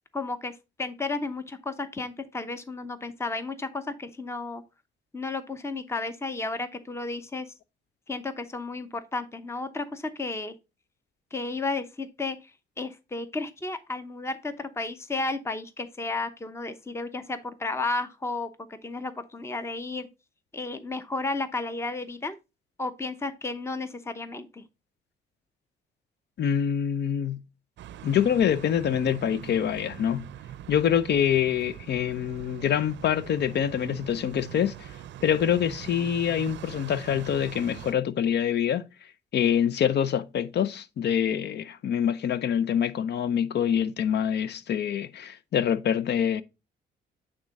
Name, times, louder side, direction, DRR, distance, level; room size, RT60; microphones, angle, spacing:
voice 1, 0.1-0.5 0.8-4.6 5.1-7.5 8.1-10.5 11.3-12.5 12.8-20.1 20.5-22.4 22.8-24.6, left 3 dB, 15° left, 0.8 m, -33 dB
voice 2, 26.4-27.4 28.0-30.3 30.7-34.9 35.2-38.9 39.3-46.4, left 9 dB, 60° left, 0.6 m, -25 dB
sound 1, 27.8-37.9, right 12 dB, 65° right, 0.5 m, -43 dB
8.6 x 3.7 x 4.0 m
cardioid pair, 90°, 20 cm